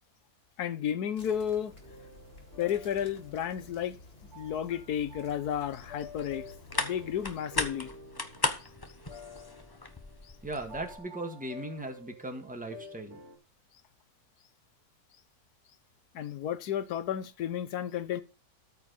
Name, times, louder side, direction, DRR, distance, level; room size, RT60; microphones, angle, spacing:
voice 1, 0.6-1.7 2.6-4.0 4.3-6.4 6.8-7.9 16.1-18.2, left 9 dB, 85° left, 1.4 m, -32 dB
sound 1, 1.2-7.4, left 2 dB, 40° left, 2.4 m, -53 dB
sound 2, 1.8-13.4, left 2 dB, 45° right, 2.8 m, -50 dB
sound 3, 5.8-11.0, left 2 dB, 20° left, 0.8 m, -37 dB
voice 2, 10.4-13.2, right 2 dB, 5° right, 1.6 m, -38 dB
13.5 x 4.6 x 5.2 m
omnidirectional pair, 1.6 m